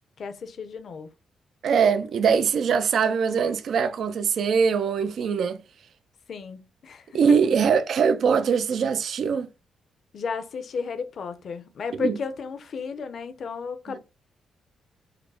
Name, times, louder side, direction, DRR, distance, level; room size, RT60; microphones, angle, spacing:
voice 1, 0.2-1.1 6.3-7.4 10.1-14.0, left 5 dB, 55° left, 0.7 m, -33 dB
voice 2, 1.6-5.6 7.1-9.5 12.0-12.1, right 6 dB, 60° right, 0.5 m, -22 dB
4.9 x 2.1 x 4.7 m
cardioid pair, 125°, 0 cm